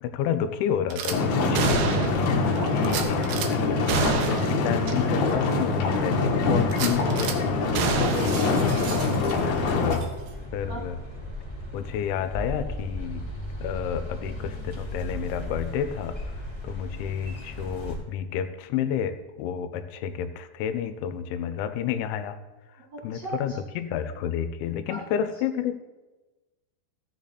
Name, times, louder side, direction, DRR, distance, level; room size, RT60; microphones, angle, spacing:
voice 1, 0.0-1.8 2.7-3.2 3.5-7.4 9.1-10.1 10.5-11.0 11.7-13.3 13.6-16.2 16.6-22.4 23.0-25.8, left 8 dB, 90° left, 10 dB, 3.1 m, -30 dB
Gunshot gunfire / Glass, 0.9-1.2 1.5-2.3 2.8-3.5 3.9-4.5 4.9-5.0 5.4-5.5 6.7-7.4 7.7-9.5 9.9-10.1, right 6 dB, 75° right, 2.3 m, -29 dB
sound 1, 1.1-10.0, left 3 dB, 70° left, 2.7 m, -24 dB
voice 2, 2.5-3.1 7.9-9.0 10.7-10.8 22.9-23.6 24.9-25.0, right 2 dB, 50° right, -6 dB, 1.9 m, -36 dB
sound 2, 8.5-18.0, left 1 dB, 15° left, 0.8 m, -37 dB
14.5 x 6.9 x 4.1 m, 1.2 s
omnidirectional pair, 5.2 m